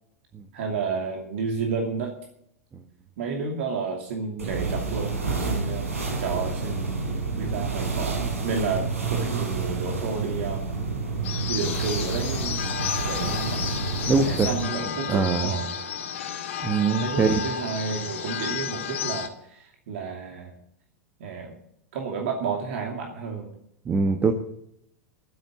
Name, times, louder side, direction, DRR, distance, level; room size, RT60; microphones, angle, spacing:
voice 1, 0.5-2.1 3.2-5.1 5.4-5.9 6.2-6.9 7.4-10.6 11.5-12.6 13.0-13.6 14.2-15.7 17.0-20.5 21.2-21.5 21.9-23.5, right 5 dB, 55° right, 1 dB, 2.6 m, -31 dB
sound 1, 4.4-14.7, right 3 dB, 80° right, 4.6 m, -29 dB
sound 2, 11.2-19.3, left 7 dB, 60° left, 2.0 m, -32 dB
voice 2, 14.1-14.5 15.1-15.5 16.6-17.4 23.8-24.3, right 5 dB, 20° right, 7 dB, 1.2 m, -22 dB
12.0 x 9.0 x 9.1 m, 0.73 s
figure-of-eight pair, 90°, 8 cm